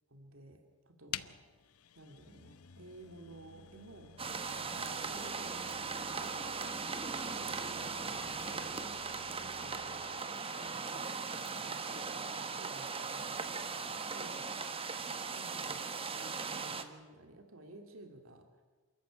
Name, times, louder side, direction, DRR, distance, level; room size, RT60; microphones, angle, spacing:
voice 1, 0.1-1.4 1.9-9.0 9.4-15.0 15.3-15.8 16.1-18.6, right 2 dB, 70° right, 5 dB, 2.5 m, -55 dB
sound 1, 1.1-10.2, left 9 dB, 85° left, 0.8 m, -51 dB
sound 2, 4.2-16.8, right 4 dB, 25° right, 1.3 m, -39 dB
28.0 x 13.5 x 8.9 m, 1.4 s
head